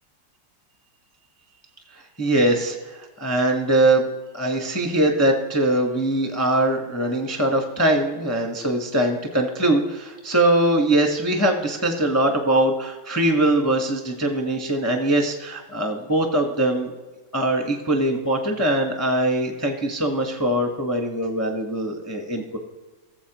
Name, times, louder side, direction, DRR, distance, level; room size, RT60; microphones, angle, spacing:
voice 1, 2.2-4.0 4.3-16.9 17.3-22.6, right 1 dB, 15° left, 2 dB, 0.5 m, -22 dB
16.5 x 7.3 x 3.0 m, 1.2 s
omnidirectional pair, 2.3 m